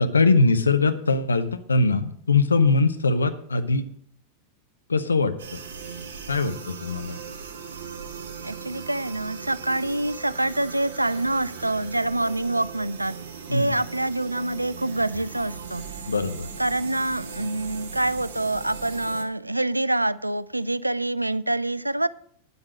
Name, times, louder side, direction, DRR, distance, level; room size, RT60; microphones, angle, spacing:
voice 1, 0.0-3.8 4.9-5.3 6.3-7.2 13.5-13.7 16.1-16.5, left 3 dB, 75° left, 0.8 m, -21 dB
sound 1, 5.4-19.2, right 6 dB, 60° right, 1.3 m, -39 dB
voice 2, 8.4-13.2 13.5-15.9 16.6-22.1, right 1 dB, 85° right, 0.3 m, -26 dB
9.5 x 8.0 x 6.2 m
figure-of-eight pair, 90°, 0 cm